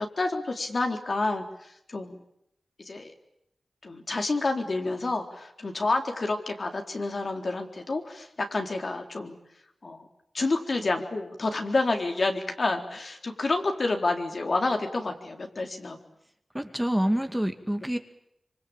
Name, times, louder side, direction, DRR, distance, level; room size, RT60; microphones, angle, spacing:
voice 1, 0.0-1.5 1.9-2.2 2.8-3.1 3.8-9.4 9.8-10.1 10.3-16.0, left 3 dB, 55° left, 4 dB, 4.0 m, -29 dB
voice 2, 16.5-18.0, equal, 10° right, 7 dB, 2.2 m, -27 dB
25.5 x 25.0 x 9.0 m, 0.78 s
cardioid pair, 60°, 0 cm